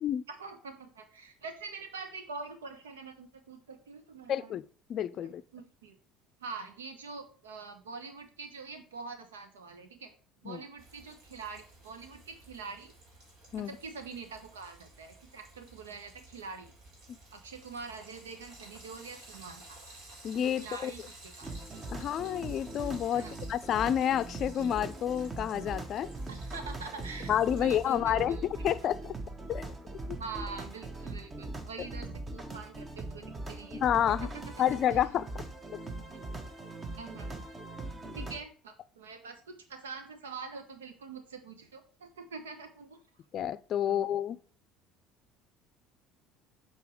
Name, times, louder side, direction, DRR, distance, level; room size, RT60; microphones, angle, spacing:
voice 1, 0.3-4.5 5.5-5.9 6.4-10.1 10.4-12.9 13.6-16.7 17.3-19.8 20.6-21.5 23.1-23.3 26.3-28.4 30.2-34.5 34.9-35.0 37.0-37.4 38.1-43.0 43.8-44.0, right 4 dB, 85° right, 1.1 m, -45 dB
voice 2, 4.3-5.4 10.4-10.6 13.5-13.8 17.1-17.2 20.2-20.9 21.9-26.1 27.3-29.1 29.5-29.7 30.1-30.2 33.8-34.3 34.6-35.3 35.7-35.8 38.1-38.2 43.3-44.4, left 10 dB, 50° left, 0.4 m, -29 dB
Frying (food), 10.8-27.9, right 2 dB, 65° right, 3.7 m, -54 dB
sound 1, 21.4-38.4, right 2 dB, 25° right, 1.5 m, -41 dB
6.9 x 4.3 x 4.8 m
hypercardioid pair, 65°, 0 cm